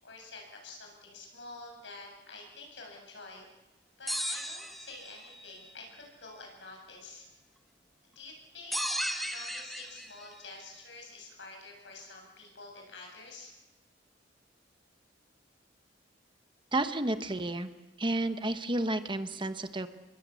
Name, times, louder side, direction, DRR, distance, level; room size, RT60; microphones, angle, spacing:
voice 1, 0.0-3.5 4.0-7.3 8.0-8.8 9.2-13.5, left 3 dB, 75° left, 1 dB, 7.5 m, -48 dB
sound 1, 4.1-5.3 8.7-10.3, equal, ahead, 1.8 m, -35 dB
voice 2, 16.7-17.7 18.0-19.9, right 2 dB, 25° right, 9 dB, 1.2 m, -31 dB
28.0 x 22.0 x 8.4 m, 1.1 s
head